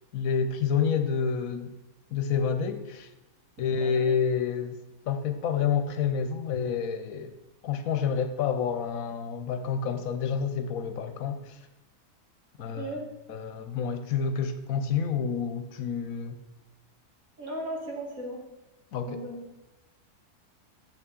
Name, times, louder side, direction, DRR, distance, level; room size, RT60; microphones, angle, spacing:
voice 1, 0.1-1.7 2.1-3.1 3.6-4.8 5.1-7.3 7.6-11.6 12.6-12.9 13.3-16.4 18.9-19.2, left 6 dB, 70° left, 9 dB, 1.0 m, -28 dB
voice 2, 3.8-4.2 12.7-13.0 17.4-18.4 19.0-19.4, right 1 dB, 65° right, -1 dB, 2.1 m, -36 dB
8.3 x 7.4 x 3.7 m, 1.1 s
omnidirectional pair, 1.6 m